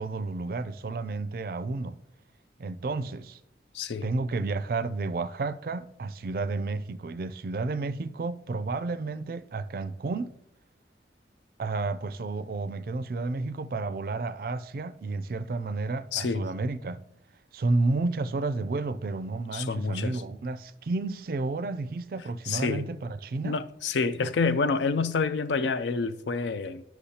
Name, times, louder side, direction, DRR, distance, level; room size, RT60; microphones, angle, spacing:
voice 1, 0.0-2.0 2.6-3.4 4.0-10.3 11.6-17.0 17.5-23.6, right 3 dB, 55° right, 0.4 m, -31 dB
voice 2, 3.7-4.1 16.1-16.5 19.5-20.2 22.5-22.9 23.4-26.8, left 4 dB, 80° left, 0.4 m, -28 dB
10.0 x 6.0 x 2.8 m
head